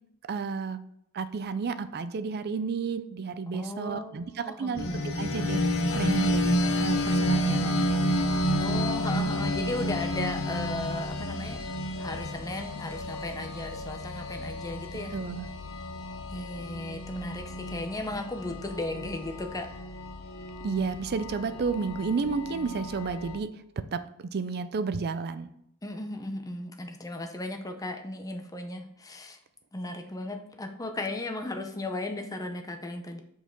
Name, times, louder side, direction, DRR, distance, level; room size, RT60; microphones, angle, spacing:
voice 1, 0.3-0.8 1.1-5.6 5.9-8.0 15.1-15.5 20.6-23.5 23.9-25.5, right 5 dB, 45° right, 12 dB, 0.4 m, -31 dB
voice 2, 3.5-4.9 8.6-11.6 12.0-15.2 16.3-19.7 25.8-29.4 29.7-33.2, left 2 dB, 15° left, 5 dB, 0.7 m, -36 dB
sound 1, 4.7-23.4, left 1 dB, 65° left, 0.8 m, -30 dB
5.6 x 4.7 x 4.5 m, 0.74 s
head